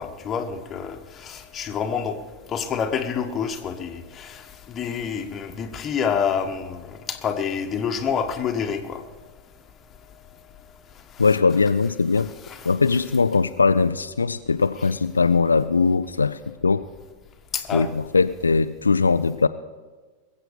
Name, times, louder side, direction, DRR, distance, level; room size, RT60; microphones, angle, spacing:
voice 1, 0.0-2.2 2.5-4.4 4.7-9.0 12.1-12.7 17.5-17.9, left 7 dB, 25° left, 1.4 m, -28 dB
voice 2, 11.2-12.3 12.6-16.9 17.7-19.5, left 4 dB, 75° left, 0.4 m, -20 dB
21.0 x 8.0 x 6.9 m
figure-of-eight pair, 90°, 0 cm